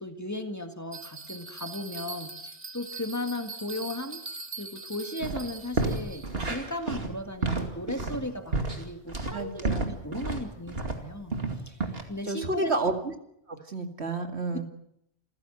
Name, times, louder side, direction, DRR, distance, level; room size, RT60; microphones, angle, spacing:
voice 1, 0.0-11.4 11.7-11.8 12.1-12.7 14.5-14.6, left 1 dB, 15° left, 6 dB, 1.9 m, -36 dB
Bell, 0.9-6.5, right 3 dB, 40° right, 1.8 m, -42 dB
sound 1, 5.2-5.4 5.7-11.0 11.3-12.0, right 3 dB, 70° right, 2.7 m, -30 dB
voice 2, 9.3-9.9 12.3-13.0 13.5-14.6, right 3 dB, 85° right, 6 dB, 2.5 m, -30 dB
27.0 x 15.5 x 7.9 m, 0.75 s
omnidirectional pair, 1.1 m